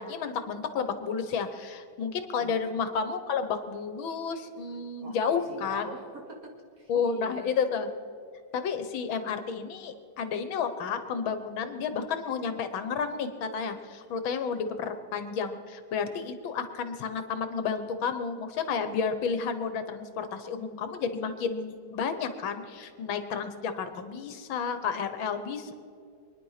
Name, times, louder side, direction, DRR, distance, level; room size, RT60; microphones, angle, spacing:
voice 1, 0.0-5.9 6.9-7.9 8.5-25.7, left 6 dB, 75° left, 10 dB, 1.8 m, -31 dB
voice 2, 5.0-7.6, right 2 dB, 45° right, 1 dB, 2.6 m, -45 dB
24.0 x 10.5 x 5.7 m, 2.4 s
omnidirectional pair, 2.2 m